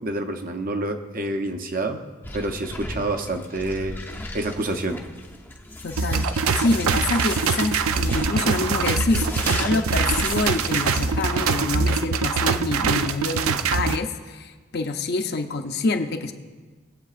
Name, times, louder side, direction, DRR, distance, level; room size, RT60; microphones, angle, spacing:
voice 1, 0.0-2.1 2.3-4.0 4.3-5.0, right 2 dB, 40° right, 6 dB, 0.7 m, -28 dB
sound 1, 2.2-11.6, left 1 dB, 10° left, 0.6 m, -35 dB
voice 2, 5.8-16.3, left 3 dB, 50° left, 6 dB, 0.6 m, -26 dB
sound 2, 6.0-14.0, right 5 dB, 90° right, 0.5 m, -23 dB
20.0 x 7.9 x 2.5 m, 1.4 s
head